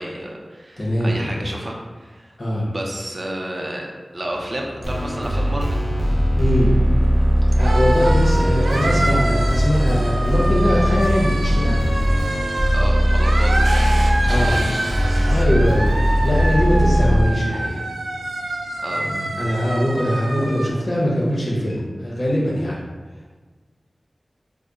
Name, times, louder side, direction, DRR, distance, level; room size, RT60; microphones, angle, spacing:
voice 1, 0.0-2.3 2.7-5.8 12.7-15.3 18.8-19.0, right 1 dB, 35° right, -1 dB, 0.6 m, -31 dB
voice 2, 0.8-1.4 2.4-2.7 6.3-6.8 7.5-11.8 14.3-14.6 15.3-16.0 16.2-17.9 18.9-22.8, equal, 55° left, -5 dB, 0.9 m, -22 dB
sound 1, 4.3-20.7, right 1 dB, 85° right, 0.4 m, -27 dB
sound 2, 4.8-17.2, equal, 25° left, 0.7 m, -19 dB
3.4 x 2.2 x 3.8 m, 1.4 s
wide cardioid pair, 65°, 0 cm